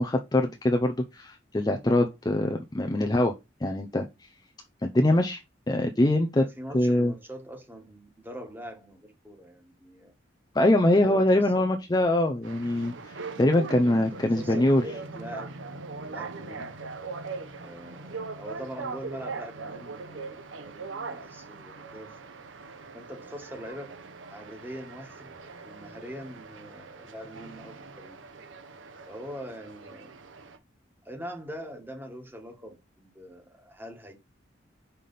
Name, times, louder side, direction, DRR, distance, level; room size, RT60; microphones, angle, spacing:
voice 1, 0.0-3.3 3.6-4.1 4.8-5.4 5.7-6.4 6.7-7.1 10.5-14.8, left 1 dB, 20° left, 0.5 m, -23 dB
voice 2, 6.4-10.1 11.0-11.7 13.9-15.6 16.0-16.8 17.6-22.2 22.9-24.0 24.3-25.4 25.6-28.2 29.1-30.1 31.0-34.1, equal, 10° right, 1.5 m, -43 dB
sound 1, 12.4-30.6, right 4 dB, 85° right, 0.9 m, -41 dB
5.8 x 3.4 x 5.3 m
head